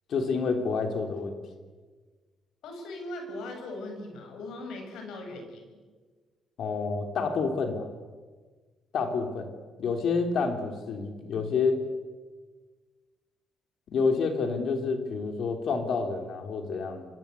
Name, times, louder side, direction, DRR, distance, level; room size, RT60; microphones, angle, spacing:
voice 1, 0.1-1.4 6.6-7.9 8.9-11.8 13.9-17.1, left 4 dB, 55° left, 6 dB, 3.3 m, -28 dB
voice 2, 2.6-5.8, left 2 dB, 80° left, 3 dB, 8.0 m, -39 dB
28.5 x 24.0 x 8.4 m, 1.4 s
cardioid pair, 155°, 0 cm